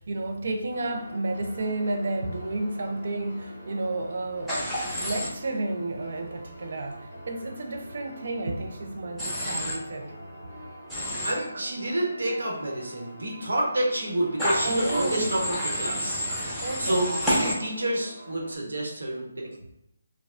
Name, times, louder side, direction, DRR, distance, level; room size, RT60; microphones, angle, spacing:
voice 1, 0.0-10.1 12.2-12.4 14.6-15.4 16.6-17.4, right 2 dB, 55° right, 0.5 m, -31 dB
sound 1, 0.7-18.6, equal, 50° left, 1.0 m, -46 dB
Human voice / Train, 4.5-5.3 9.2-9.7 10.9-11.3 14.4-17.5, equal, ahead, 0.7 m, -29 dB
voice 2, 11.2-16.2 16.8-19.5, right 1 dB, 85° right, 1.1 m, -29 dB
4.7 x 2.2 x 2.5 m
hypercardioid pair, 165°, 0 cm